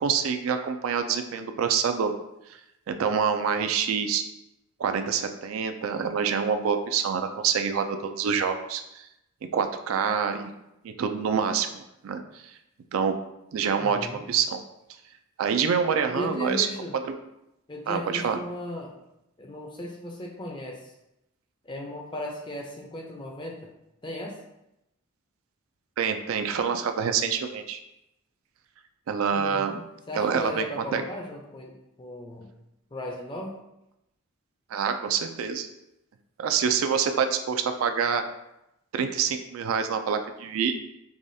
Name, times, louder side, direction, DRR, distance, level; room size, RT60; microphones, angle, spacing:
voice 1, 0.0-2.1 2.9-4.2 4.8-9.1 9.5-10.5 10.8-12.5 12.9-13.2 13.5-14.0 14.3-14.6 15.4-16.7 17.0-17.2 17.9-18.4 26.0-27.8 29.1-29.8 30.1-30.6 30.9-31.0 34.7-35.7 36.4-38.2 38.9-40.7, right 6 dB, 70° right, 7 dB, 0.3 m, -26 dB
voice 2, 13.7-14.2 16.1-16.9 17.7-19.0 19.4-20.9 21.6-23.7 24.0-24.4 29.3-29.8 30.1-32.5 32.9-33.6, left 1 dB, 20° left, 1 dB, 0.5 m, -37 dB
4.8 x 2.3 x 2.6 m, 0.86 s
head